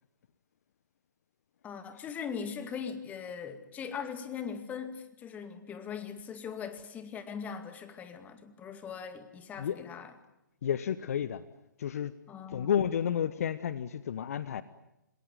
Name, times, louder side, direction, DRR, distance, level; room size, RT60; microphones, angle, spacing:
voice 1, 1.6-10.1 12.3-12.7, left 7 dB, 15° left, 10 dB, 2.2 m, -40 dB
voice 2, 10.6-11.4 11.8-12.1 12.5-14.6, left 9 dB, 50° left, 15 dB, 1.1 m, -31 dB
27.5 x 20.0 x 9.4 m, 0.90 s
figure-of-eight pair, 130°, 10 cm